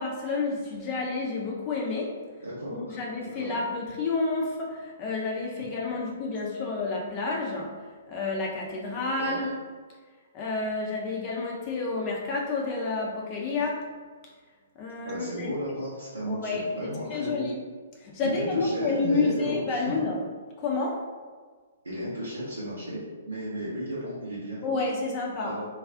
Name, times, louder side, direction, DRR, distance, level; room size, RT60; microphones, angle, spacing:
voice 1, 0.0-2.2 2.7-9.6 10.3-13.9 14.8-15.5 16.2-16.7 17.1-17.5 18.0-20.2 20.6-21.0 24.6-25.6, left 3 dB, 30° left, -2 dB, 0.5 m, -30 dB
voice 2, 2.4-3.0 3.3-3.5 9.1-9.4 15.0-17.4 18.2-19.8 21.8-23.0 23.3-24.6 25.4-25.7, equal, 85° right, -9 dB, 0.8 m, -34 dB
2.4 x 2.3 x 3.5 m, 1.5 s
figure-of-eight pair, 120°, 0 cm